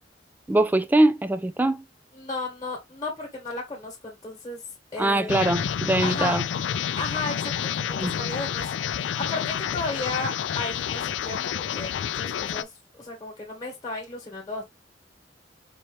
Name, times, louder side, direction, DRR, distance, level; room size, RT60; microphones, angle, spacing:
voice 1, 0.5-1.8 5.0-6.4 7.9-8.1, right 1 dB, 10° right, 0.3 m, -22 dB
voice 2, 2.1-4.6 4.9-5.5 6.0-6.4 7.0-8.7 9.0-14.6, left 3 dB, 20° left, 1.3 m, -34 dB
sound 1, 5.3-12.6, left 8 dB, 85° left, 0.3 m, -29 dB
4.3 x 2.8 x 3.0 m
head